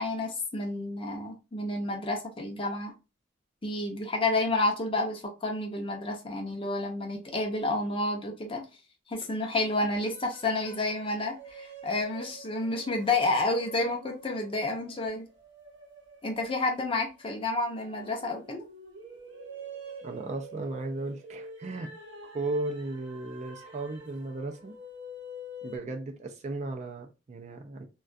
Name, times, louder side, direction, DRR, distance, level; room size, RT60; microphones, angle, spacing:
voice 1, 0.0-2.9 3.6-8.6 9.1-15.2 16.2-18.6, left 2 dB, 30° left, 2 dB, 0.6 m, -30 dB
sound 1, 9.9-25.8, right 1 dB, 75° right, 0.7 m, -47 dB
voice 2, 20.0-21.9 22.3-24.7 25.6-27.9, right 2 dB, 40° right, 4 dB, 0.4 m, -35 dB
2.3 x 2.2 x 2.5 m, 0.29 s
head